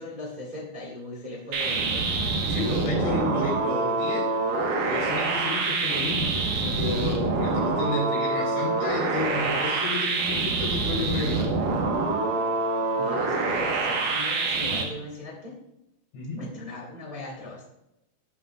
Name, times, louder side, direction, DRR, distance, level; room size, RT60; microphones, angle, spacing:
voice 1, 0.0-2.1 12.9-15.6 16.4-17.6, left 1 dB, 85° right, -4 dB, 0.4 m, -38 dB
sound 1, 1.5-14.8, right 3 dB, 65° right, 2.3 m, -26 dB
voice 2, 2.5-4.3 4.9-11.5 16.1-16.4, left 3 dB, 70° left, -4 dB, 5.4 m, -31 dB
13.0 x 9.3 x 2.4 m, 0.87 s
omnidirectional pair, 5.3 m